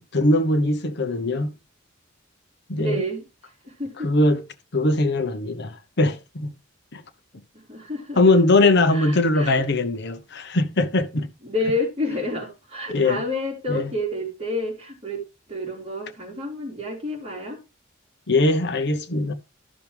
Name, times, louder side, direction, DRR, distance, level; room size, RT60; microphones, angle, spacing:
voice 1, 0.1-1.5 2.7-3.0 4.0-4.4 4.7-6.5 6.9-7.0 8.2-11.3 12.9-13.2 13.7-13.9 18.3-19.3, left 2 dB, 55° left, 0.9 m, -21 dB
voice 2, 2.8-4.1 7.5-8.2 8.9-9.6 11.4-15.2 15.5-17.6, left 1 dB, 30° right, 3.2 m, -29 dB
12.5 x 6.0 x 3.4 m
head